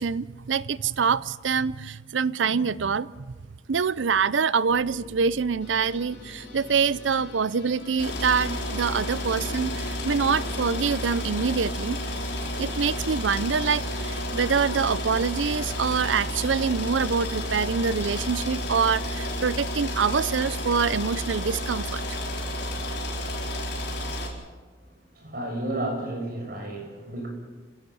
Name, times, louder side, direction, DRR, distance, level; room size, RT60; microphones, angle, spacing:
voice 1, 0.0-3.3 3.7-12.0 12.6-22.0, right 5 dB, 85° right, 19 dB, 0.6 m, -25 dB
sound 1, 4.7-19.7, equal, 5° left, 7.5 m, -47 dB
sound 2, 5.6-11.2, left 2 dB, 85° left, 3.8 m, -47 dB
sound 3, 8.0-24.3, left 1 dB, 65° left, 4.8 m, -31 dB
voice 2, 25.1-27.3, right 1 dB, 50° right, 1 dB, 6.8 m, -32 dB
28.5 x 17.0 x 7.1 m, 1.4 s
head